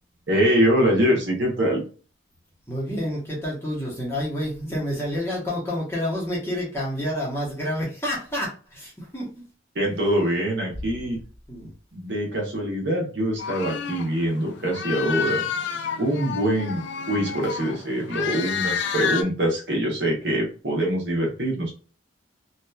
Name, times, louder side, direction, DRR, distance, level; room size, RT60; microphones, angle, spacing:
voice 1, 0.3-1.8 9.7-11.2 11.9-15.4 16.0-16.8 17.1-21.7, equal, 65° right, -1 dB, 0.9 m, -24 dB
voice 2, 2.7-9.3 11.5-11.7 15.1-15.4, equal, 15° left, -5 dB, 0.9 m, -29 dB
sound 1, 13.4-19.2, left 6 dB, 65° left, 0.3 m, -30 dB
2.8 x 2.3 x 2.2 m, 0.37 s
head